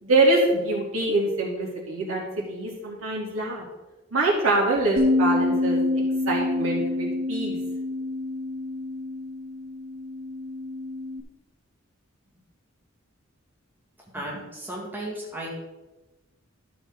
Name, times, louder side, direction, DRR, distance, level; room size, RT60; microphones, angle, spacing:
voice 1, 0.0-2.2 2.5-3.6 4.1-5.8 6.3-7.6, right 2 dB, 85° right, -3 dB, 2.9 m, -24 dB
Bass guitar, 5.0-11.2, left 2 dB, 60° right, 1.4 m, -27 dB
voice 2, 14.1-15.5, right 1 dB, 10° right, -4 dB, 2.0 m, -35 dB
12.0 x 7.3 x 3.8 m, 1.1 s
head